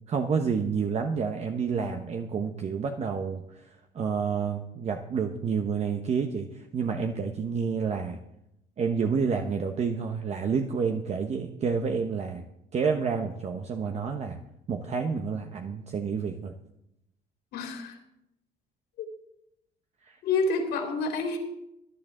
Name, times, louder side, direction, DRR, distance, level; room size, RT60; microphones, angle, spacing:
voice 1, 0.1-8.2 8.8-12.5 12.7-14.4 14.7-16.5 20.0-20.2, right 5 dB, 40° right, 5 dB, 0.9 m, -29 dB
voice 2, 17.5-18.0 19.0-19.1 20.2-21.4, left 3 dB, 80° left, 1 dB, 3.5 m, -28 dB
17.0 x 10.5 x 3.8 m, 0.83 s
cardioid pair, 110°, 17 cm